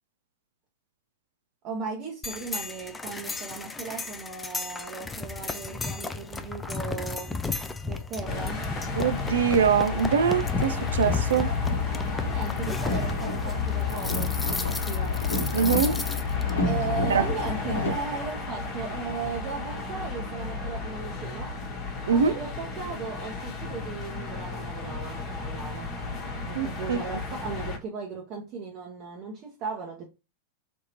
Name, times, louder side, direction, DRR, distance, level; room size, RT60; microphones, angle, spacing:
voice 1, 1.6-7.3 7.9-8.7 11.9-15.1 15.8-16.0 16.6-21.5 22.1-25.9 26.5-30.1, right 5 dB, 40° right, 0.9 m, -37 dB
sound 1, 2.2-16.5, left 3 dB, 10° left, 0.4 m, -34 dB
sound 2, 8.2-27.8, left 3 dB, 35° left, 1.1 m, -34 dB
voice 2, 9.0-11.5 15.5-16.0 17.1-17.3 22.1-22.3 26.5-27.0, right 7 dB, 65° right, 0.3 m, -23 dB
Boat Water vehicle, 10.2-17.9, left 5 dB, 65° left, 0.9 m, -29 dB
3.5 x 2.8 x 2.8 m
figure-of-eight pair, 90°, 0 cm